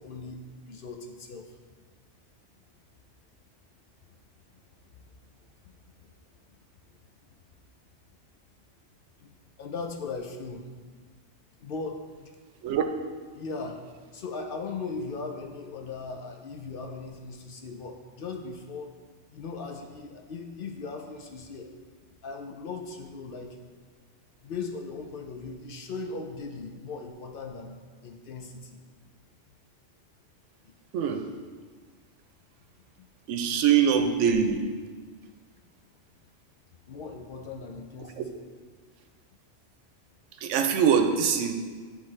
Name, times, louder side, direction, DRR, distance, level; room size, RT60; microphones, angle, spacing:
voice 1, 0.0-1.6 4.9-5.1 6.0-6.1 6.9-7.1 9.2-10.7 11.6-12.3 13.3-13.9 14.1-19.0 19.3-21.7 22.2-23.6 24.4-28.8 33.0-33.1 36.9-38.2, left 4 dB, 60° left, 3 dB, 0.6 m, -38 dB
voice 2, 33.3-34.6 38.2-38.3 40.4-41.5, right 7 dB, 90° right, 6 dB, 0.9 m, -23 dB
9.6 x 3.5 x 3.2 m, 1.5 s
omnidirectional pair, 1.2 m